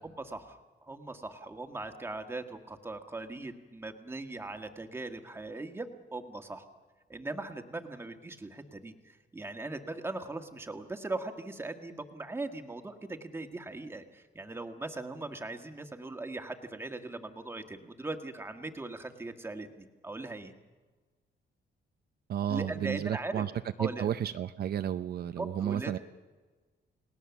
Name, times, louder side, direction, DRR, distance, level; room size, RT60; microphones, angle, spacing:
voice 1, 0.0-6.6 7.1-20.5 22.5-23.4 23.8-24.1 25.4-26.0, right 2 dB, 10° right, 6 dB, 1.6 m, -40 dB
voice 2, 22.3-23.5 23.8-26.0, right 10 dB, 60° right, 10 dB, 0.6 m, -32 dB
30.0 x 19.0 x 7.1 m, 1.3 s
wide cardioid pair, 165°, 19 cm